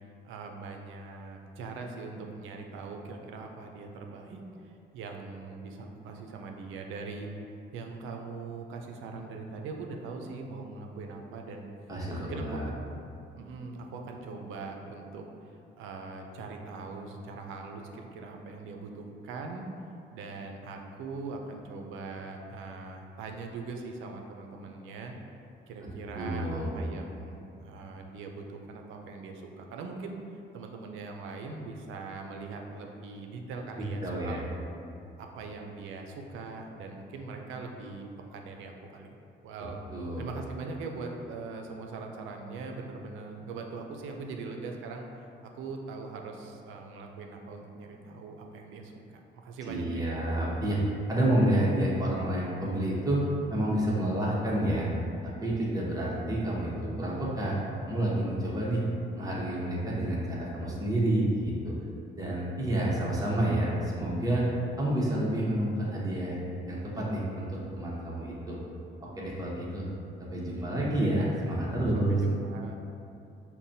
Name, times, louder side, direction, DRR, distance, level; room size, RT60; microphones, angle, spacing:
voice 1, 0.2-7.3 7.7-11.7 12.1-12.8 13.3-15.2 15.8-19.7 20.1-25.1 25.7-30.2 30.5-34.5 35.2-39.8 40.2-45.1 45.5-48.9 49.4-50.1 71.9-72.8, right 4 dB, 85° right, 3 dB, 0.4 m, -41 dB
voice 2, 11.9-12.7 26.1-26.7 34.0-34.4 39.9-40.2 49.7-50.8 51.1-53.3 53.5-54.9 55.2-57.6 57.8-58.8 59.1-61.7 62.2-64.4 64.8-66.4 66.7-68.6 69.2-69.8 70.3-72.2, right 1 dB, 20° right, -5 dB, 0.9 m, -29 dB
5.6 x 2.2 x 2.6 m, 2.5 s
cardioid pair, 90°, 20 cm